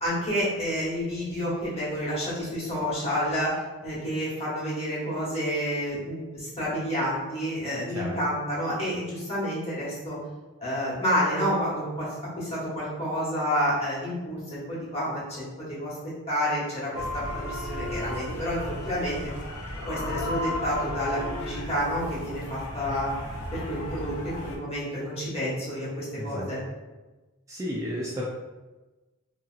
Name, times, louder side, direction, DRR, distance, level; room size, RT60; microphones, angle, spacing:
voice 1, 0.0-10.2 10.6-15.9 16.3-19.3 19.9-23.1 23.5-26.6, equal, 30° left, -8 dB, 1.2 m, -29 dB
voice 2, 7.9-8.2 26.1-26.5 27.5-28.2, equal, 15° right, -5 dB, 0.3 m, -32 dB
sound 1, 16.9-24.6, left 1 dB, 80° left, 0.5 m, -34 dB
2.8 x 2.7 x 2.4 m, 1.2 s
head